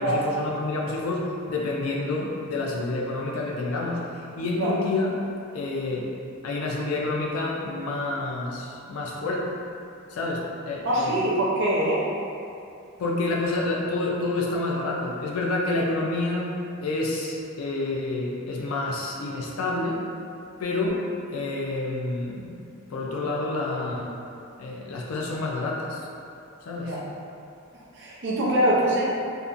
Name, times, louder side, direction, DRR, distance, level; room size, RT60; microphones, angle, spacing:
voice 1, 0.0-5.1 5.5-6.1 6.4-9.6 10.1-11.3 13.0-16.5 16.8-20.0 20.6-22.6 22.9-24.1 24.6-26.0 26.7-27.0, left 2 dB, 80° left, -2 dB, 0.4 m, -28 dB
voice 2, 10.8-12.1 26.8-27.0 27.7-29.0, right 1 dB, 60° right, -6 dB, 0.6 m, -24 dB
2.7 x 2.1 x 2.4 m, 2.6 s
head